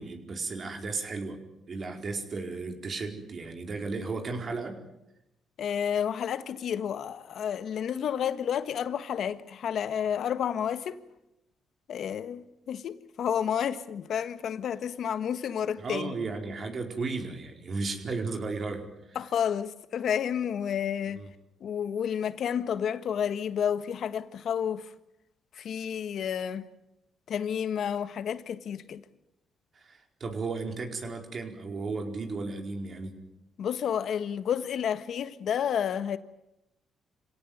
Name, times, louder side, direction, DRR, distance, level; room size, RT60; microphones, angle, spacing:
voice 1, 0.0-1.4 1.7-4.8 15.8-19.2 21.1-21.3 29.7-33.2, right 3 dB, 45° right, 4.6 m, -34 dB
voice 2, 5.6-11.0 11.9-16.1 19.1-21.2 21.6-24.9 25.5-26.7 27.3-29.0 33.6-36.2, left 8 dB, 65° left, 1.5 m, -30 dB
27.5 x 17.5 x 9.5 m
cardioid pair, 90°, 0 cm